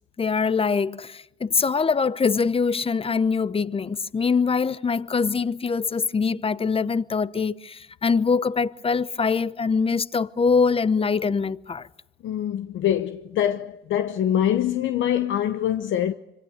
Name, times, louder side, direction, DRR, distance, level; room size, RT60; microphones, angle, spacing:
voice 1, 0.2-11.9, left 5 dB, 30° left, 0.8 m, -23 dB
voice 2, 12.2-16.1, left 10 dB, 75° left, 0.9 m, -24 dB
25.5 x 25.0 x 6.6 m
cardioid pair, 90°, 20 cm